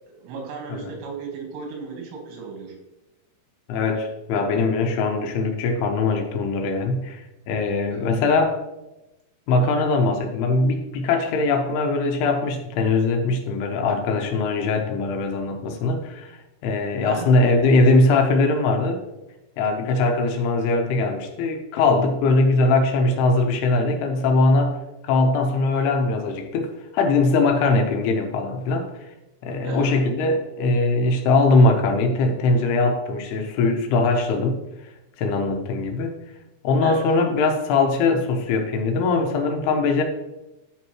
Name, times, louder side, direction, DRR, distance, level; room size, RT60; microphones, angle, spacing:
voice 1, 0.1-2.8 7.9-8.2 17.0-17.3 29.6-29.9 36.8-37.0, right 4 dB, 75° right, 0 dB, 3.6 m, -35 dB
voice 2, 3.7-8.6 9.5-19.0 19.6-28.9 29.4-34.6 35.2-36.1 36.6-40.0, left 3 dB, 80° left, 4 dB, 2.7 m, -21 dB
12.5 x 4.4 x 3.0 m, 0.98 s
omnidirectional pair, 5.1 m